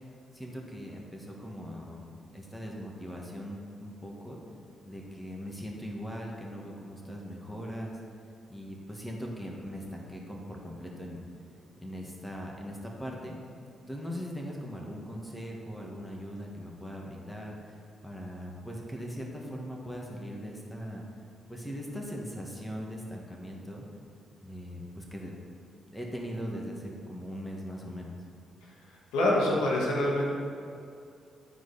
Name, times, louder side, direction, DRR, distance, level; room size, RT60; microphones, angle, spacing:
voice 1, 0.3-2.0 2.3-4.4 4.9-8.0 8.5-11.2 11.8-13.4 13.9-17.8 18.0-21.1 21.5-23.8 24.4-25.3 25.9-28.2, equal, 5° left, -1 dB, 1.9 m, -40 dB
voice 2, 29.1-30.3, left 1 dB, 85° left, -4 dB, 1.6 m, -25 dB
12.0 x 4.8 x 4.2 m, 2.5 s
supercardioid pair, 55°, 0 cm